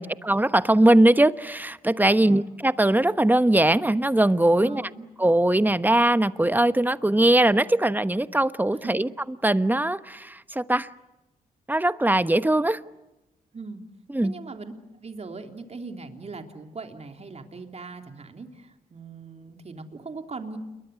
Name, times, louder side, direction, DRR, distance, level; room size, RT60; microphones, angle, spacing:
voice 1, 0.2-4.9 5.2-9.1 9.4-10.9 11.7-12.8 14.1-14.3, right 1 dB, 10° right, 1.2 m, -21 dB
voice 2, 2.1-2.5 4.6-5.1 8.7-8.9 13.5-13.8 14.2-14.7 15.0-20.6, right 4 dB, 45° right, 3.4 m, -40 dB
28.5 x 23.0 x 8.3 m
cardioid pair, 60°, 16 cm